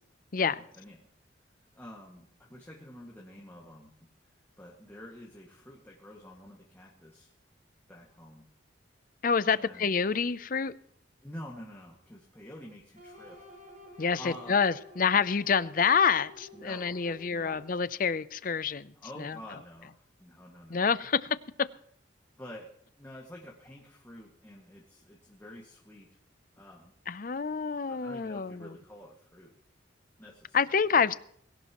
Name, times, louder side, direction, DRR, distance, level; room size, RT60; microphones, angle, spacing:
voice 1, 0.4-1.1 1.7-3.9 4.6-7.3 7.9-8.4 9.5-9.9 11.2-13.4 14.1-14.7 16.5-17.7 19.0-19.9 20.2-20.9 22.4-22.7 23.0-26.1 26.6-26.9 27.9-29.5 30.2-31.1, left 1 dB, 10° left, 1.9 m, -48 dB
voice 2, 9.2-10.7 14.0-18.9 19.2-19.3 20.7-21.2 27.1-28.7 30.5-31.1, left 6 dB, 45° left, 0.5 m, -27 dB
sound 1, 12.9-17.9, equal, 40° right, 6.1 m, -51 dB
21.5 x 17.5 x 3.0 m
head